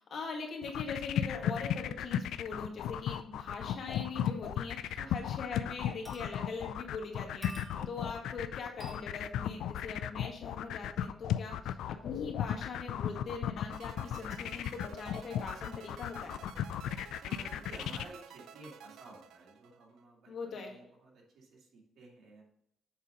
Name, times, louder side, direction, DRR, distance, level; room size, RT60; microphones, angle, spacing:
voice 1, 0.0-16.4 20.3-20.8, left 4 dB, 60° left, 1 dB, 1.9 m, -42 dB
sound 1, 0.6-18.1, left 10 dB, 80° left, 0.3 m, -35 dB
sound 2, 6.0-6.7 7.4-8.1 8.8-9.2 10.5-10.7 11.7-11.8, right 1 dB, 15° right, 2.0 m, -50 dB
sound 3, 13.7-20.0, right 8 dB, 85° right, 0.5 m, -53 dB
voice 2, 17.2-22.4, right 2 dB, 65° right, -2 dB, 2.5 m, -53 dB
7.6 x 4.1 x 5.1 m, 0.77 s
cardioid pair, 90°, 0 cm